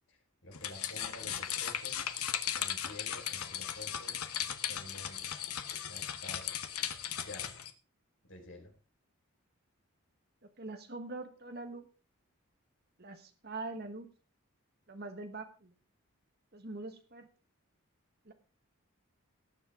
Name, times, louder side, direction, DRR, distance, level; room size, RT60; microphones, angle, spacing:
voice 1, 0.1-2.1 2.5-4.3 4.7-5.4 5.9-6.5 7.2-7.5 8.2-8.7, left 1 dB, 65° left, 1 dB, 4.6 m, -50 dB
sound 1, 0.5-7.7, left 9 dB, 85° left, 1.1 m, -37 dB
voice 2, 10.4-11.9 13.0-14.1 14.9-15.7 16.5-17.3 18.2-18.3, right 2 dB, 45° right, 6 dB, 1.4 m, -43 dB
18.5 x 7.4 x 3.6 m, 0.35 s
head